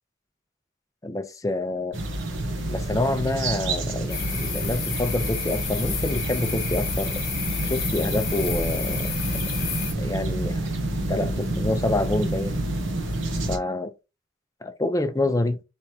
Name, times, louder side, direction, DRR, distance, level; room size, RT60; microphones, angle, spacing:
voice 1, 1.0-2.0 2.7-7.2 7.7-9.1 10.0-10.7 11.1-12.6 13.5-13.9 14.6-15.6, left 2 dB, 15° left, 0.5 m, -27 dB
sound 1, 1.9-13.6, right 1 dB, 70° right, 0.9 m, -28 dB
sound 2, 4.1-9.9, left 6 dB, 50° left, 1.3 m, -31 dB
4.6 x 3.4 x 2.8 m
head